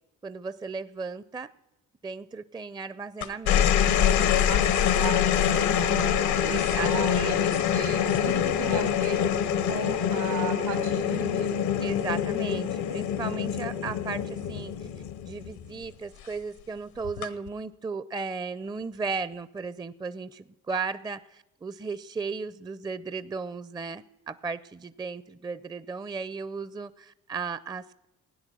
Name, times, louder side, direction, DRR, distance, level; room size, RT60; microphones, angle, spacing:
voice 1, 0.2-1.5 2.0-4.3 6.4-7.7 11.8-14.7 15.3-28.1, right 4 dB, 10° right, 16 dB, 0.5 m, -36 dB
sound 1, 3.2-15.8 17.0-17.5, left 9 dB, 80° left, 1.0 m, -25 dB
voice 2, 4.3-9.2 9.7-11.5, right 5 dB, 85° right, 5 dB, 3.0 m, -36 dB
16.0 x 9.7 x 6.0 m, 1.0 s
supercardioid pair, 60°, 38 cm